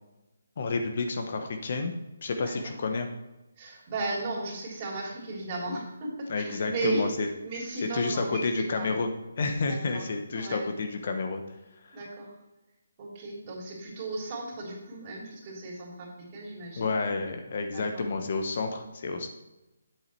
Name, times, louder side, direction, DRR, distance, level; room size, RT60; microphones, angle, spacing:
voice 1, 0.6-1.9 2.2-3.1 6.3-7.3 7.9-9.1 9.4-11.4 11.8-12.0 16.8-19.3, left 3 dB, 50° left, 5 dB, 1.0 m, -30 dB
voice 2, 3.6-7.1 7.4-8.9 9.6-10.0 10.3-10.6 11.9-12.3 13.0-16.9 17.7-18.0, right 2 dB, 30° right, -4 dB, 3.4 m, -35 dB
8.1 x 8.0 x 4.4 m, 1.0 s
figure-of-eight pair, 150°, 0 cm